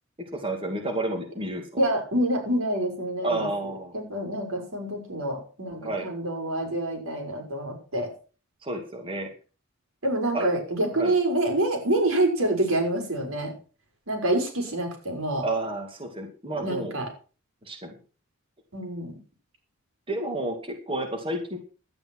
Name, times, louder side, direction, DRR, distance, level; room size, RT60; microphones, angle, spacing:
voice 1, 0.3-1.6 3.2-4.0 5.8-6.1 8.6-9.3 10.3-10.5 10.9-11.1 15.4-17.0 17.6-18.0 20.1-21.6, right 2 dB, 25° right, 2 dB, 2.4 m, -30 dB
voice 2, 1.8-3.5 3.9-8.1 10.0-13.5 14.1-15.4 16.6-17.0 18.7-19.1, right 1 dB, 85° right, 2 dB, 4.9 m, -27 dB
12.0 x 9.0 x 6.1 m, 0.36 s
head